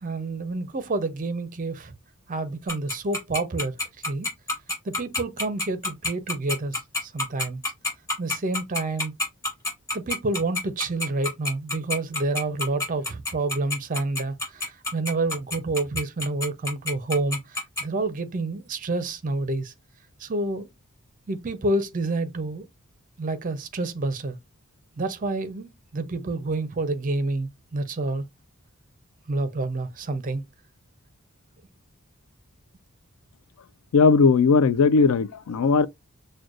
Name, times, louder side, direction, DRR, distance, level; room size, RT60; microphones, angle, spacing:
voice 1, 0.0-1.9 2.3-3.8 4.1-4.3 4.9-7.6 8.2-9.1 9.9-19.7 20.2-20.7 21.3-22.7 23.2-24.4 25.0-28.3 29.3-30.4, right 2 dB, 35° right, 0.5 m, -28 dB
Tick-tock, 2.7-17.8, left 2 dB, 15° left, 2.9 m, -27 dB
voice 2, 33.9-35.9, left 4 dB, 70° left, 0.4 m, -18 dB
6.2 x 2.2 x 2.4 m
head